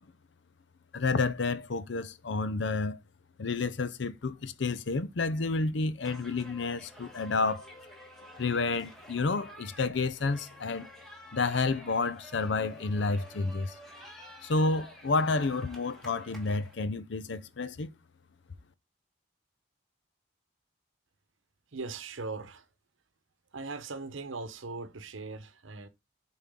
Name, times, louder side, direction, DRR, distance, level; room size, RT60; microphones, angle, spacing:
voice 1, 0.9-3.0 3.4-7.6 8.4-10.9 11.3-13.7 14.4-17.9, left 3 dB, 70° left, 0.6 m, -30 dB
sound 1, 6.0-16.7, equal, ahead, 1.5 m, -51 dB
voice 2, 21.7-22.7 23.5-25.9, right 3 dB, 90° right, 0.9 m, -39 dB
7.2 x 4.4 x 3.7 m
head